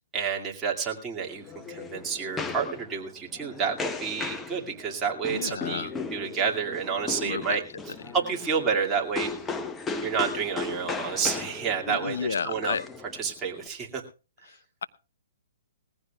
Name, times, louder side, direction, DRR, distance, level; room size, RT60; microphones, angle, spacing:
voice 1, 0.1-7.6 8.1-9.5 10.0-12.8 13.2-14.0, right 6 dB, 15° right, -1 dB, 2.3 m, -29 dB
sound 1, 1.2-13.7, left 4 dB, 10° left, 0.9 m, -36 dB
voice 2, 5.3-5.9 7.2-7.6 8.1-8.2 11.9-12.8 14.5-14.9, left 6 dB, 80° left, 16 dB, 0.8 m, -32 dB
20.0 x 15.0 x 2.4 m, 0.33 s
hypercardioid pair, 145°, 0 cm